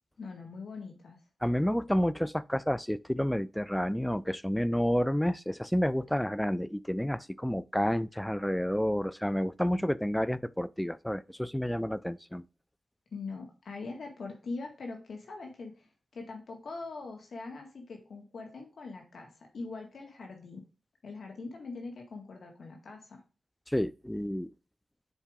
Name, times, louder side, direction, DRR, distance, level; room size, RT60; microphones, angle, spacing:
voice 1, 0.2-1.2 13.1-15.8 16.1-20.6 21.0-23.2, left 3 dB, 75° left, 1.8 m, -42 dB
voice 2, 1.4-12.4 23.7-24.5, equal, 5° left, 0.4 m, -30 dB
7.2 x 4.7 x 3.6 m
cardioid pair, 65°, 0 cm